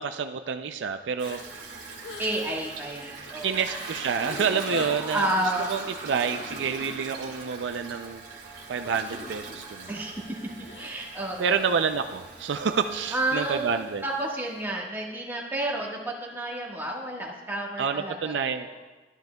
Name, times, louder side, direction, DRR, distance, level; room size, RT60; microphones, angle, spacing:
voice 1, 0.0-1.4 3.4-5.3 5.7-8.2 8.7-10.0 11.4-14.0 17.8-18.7, right 6 dB, 75° right, 8 dB, 0.4 m, -28 dB
sound 1, 1.2-2.5 2.8-3.2 3.8-3.9 4.1-5.2 10.6-11.2 11.5-11.6, left 6 dB, 70° left, 0.5 m, -42 dB
Toilet flush, 1.2-14.6, right 3 dB, 50° right, 1.8 m, -41 dB
voice 2, 2.2-3.8 4.9-5.7 9.9-10.4 10.7-11.5 13.1-18.8, right 1 dB, 10° right, -3 dB, 1.4 m, -31 dB
12.5 x 10.5 x 2.2 m, 1.2 s
head